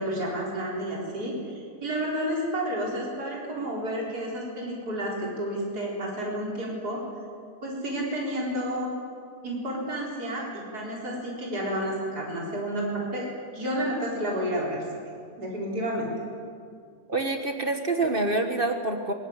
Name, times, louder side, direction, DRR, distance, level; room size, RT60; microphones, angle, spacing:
voice 1, 0.0-7.0 7.6-8.9 9.4-13.3 13.5-14.8 15.4-16.1, right 1 dB, 80° right, -3 dB, 4.9 m, -30 dB
voice 2, 17.1-19.1, right 2 dB, 35° right, 5 dB, 1.5 m, -26 dB
21.5 x 18.0 x 9.8 m, 2.2 s
omnidirectional pair, 1.7 m